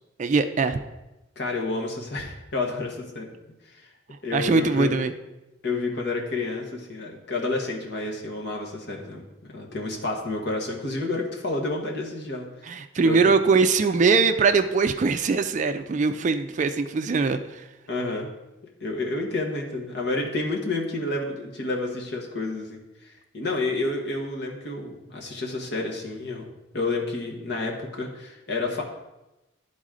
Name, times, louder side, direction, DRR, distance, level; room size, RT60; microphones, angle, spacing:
voice 1, 0.2-0.8 4.3-5.1 12.6-17.6, right 4 dB, 40° right, 9 dB, 0.4 m, -22 dB
voice 2, 1.4-3.3 3.7-3.9 4.2-4.9 5.6-12.5 13.0-13.2 17.9-18.3 18.8-28.8, left 2 dB, 60° left, 0 dB, 1.3 m, -30 dB
11.5 x 4.1 x 3.7 m, 1.0 s
head